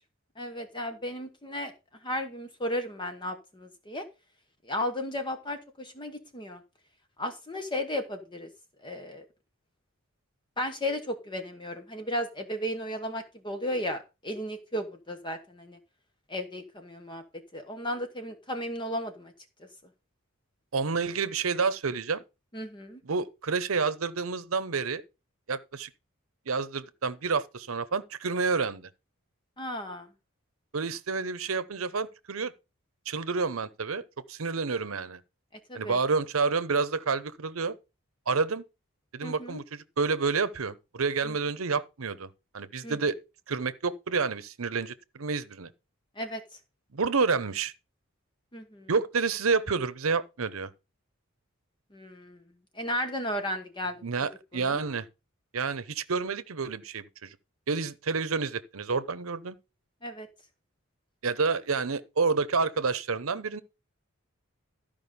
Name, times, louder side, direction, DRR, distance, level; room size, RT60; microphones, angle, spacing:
voice 1, 0.4-1.7 2.0-4.0 4.6-6.6 7.2-8.5 8.8-9.2 10.6-15.8 16.3-17.2 17.5-19.3 22.5-23.0 29.6-30.1 35.7-36.0 39.2-39.6 41.2-41.3 42.8-43.0 46.2-46.4 48.5-48.9 51.9-52.4 52.7-54.0 54.5-54.8 60.0-60.3, left 1 dB, 25° left, 1.1 m, -34 dB
voice 2, 20.7-22.2 23.0-25.0 25.5-25.9 26.5-28.9 30.7-32.5 33.1-34.0 34.3-35.2 35.7-37.8 38.3-38.6 39.1-42.3 42.5-43.2 43.5-45.7 46.9-47.7 48.9-50.7 54.0-55.1 55.5-57.4 57.7-59.6 61.2-63.6, right 4 dB, 90° right, 0.8 m, -29 dB
13.0 x 5.1 x 5.2 m
head